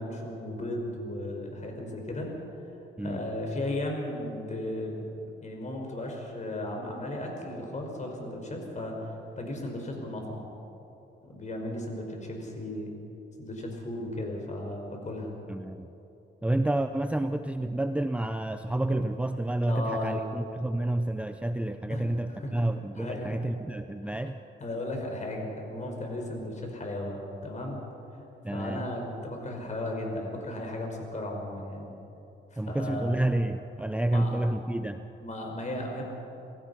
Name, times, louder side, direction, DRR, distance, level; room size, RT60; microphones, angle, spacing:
voice 1, 0.0-2.3 3.0-10.5 11.2-12.9 13.4-15.3 19.7-20.2 21.9-22.0 22.4-22.7 23.0-23.3 24.0-24.1 24.6-27.8 28.5-31.9 32.5-33.2 34.1-34.4 35.2-36.0, left 1 dB, 35° left, 1 dB, 5.3 m, -35 dB
voice 2, 15.5-15.9 16.4-24.4 28.4-28.9 32.6-35.0, right 1 dB, 5° right, 8 dB, 0.6 m, -29 dB
27.5 x 16.5 x 5.7 m, 3.0 s
cardioid pair, 90°, 20 cm